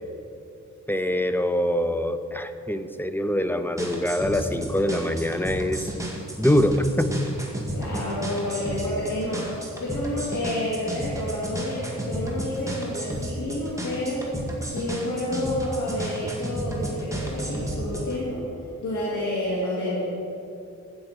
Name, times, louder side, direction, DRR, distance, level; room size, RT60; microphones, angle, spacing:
voice 1, 0.9-5.9 6.4-7.3, left 1 dB, 5° left, 9 dB, 0.6 m, -24 dB
sound 1, 3.8-18.1, right 1 dB, 10° right, 2.0 m, -32 dB
voice 2, 7.7-14.3 14.7-18.4 18.8-20.1, left 1 dB, 85° left, -7 dB, 2.3 m, -29 dB
13.0 x 8.8 x 4.9 m, 2.6 s
cardioid pair, 80°, 30 cm